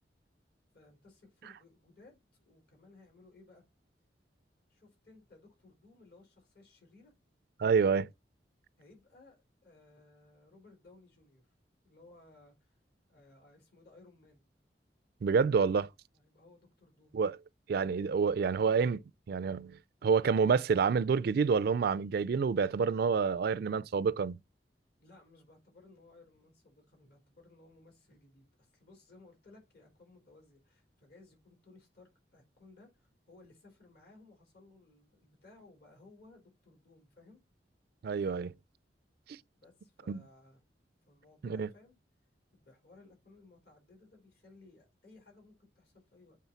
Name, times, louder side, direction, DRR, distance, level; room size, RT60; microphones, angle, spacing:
voice 1, 0.7-3.6 4.7-7.1 8.8-11.5 11.8-12.8 13.1-14.4 16.1-17.2 25.0-37.4 39.5-40.6 41.1-42.0 42.5-46.4, left 2 dB, 60° left, 4.1 m, -60 dB
voice 2, 7.6-8.1 15.2-15.9 17.1-17.4 17.7-24.4 38.0-38.5 40.1-40.2 41.4-41.7, right 5 dB, 60° right, 0.4 m, -28 dB
8.2 x 3.8 x 5.8 m
head